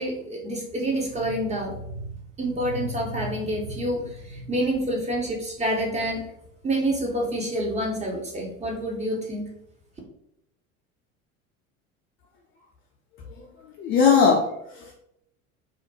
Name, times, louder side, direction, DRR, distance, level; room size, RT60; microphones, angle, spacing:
voice 1, 0.0-6.2 6.6-9.5, right 1 dB, 15° right, -1 dB, 0.5 m, -28 dB
voice 2, 13.8-14.9, left 5 dB, 30° left, -1 dB, 0.4 m, -20 dB
2.4 x 2.1 x 2.6 m, 0.78 s
figure-of-eight pair, 70°, 42 cm